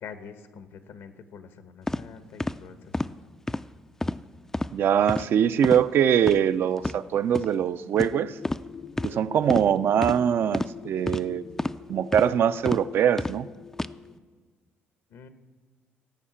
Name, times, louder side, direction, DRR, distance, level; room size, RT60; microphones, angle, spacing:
voice 1, 0.0-3.2 15.1-15.3, left 6 dB, 75° left, 10 dB, 1.0 m, -45 dB
sound 1, 1.9-2.0 2.4-2.6 2.9-3.1 3.5-3.6 4.0-4.2 4.5-4.7 5.1-5.3 5.6-5.8 6.2-6.4 6.8-7.0 7.3-7.5 8.0-8.1 8.4-8.6 9.0-9.1 9.5-9.7 10.0-10.2 10.5-10.7 11.1-11.2 11.6-11.8 12.1-12.3 12.7-12.8 13.2-13.4 13.7-13.9, left 2 dB, 10° left, 0.3 m, -29 dB
voice 2, 4.7-8.4 9.0-11.4 11.9-13.5, right 9 dB, 60° right, 13 dB, 0.4 m, -23 dB
sound 2, 7.9-14.1, left 7 dB, 45° left, 0.6 m, -45 dB
14.0 x 5.6 x 8.6 m, 1.5 s
cardioid pair, 105°, 4 cm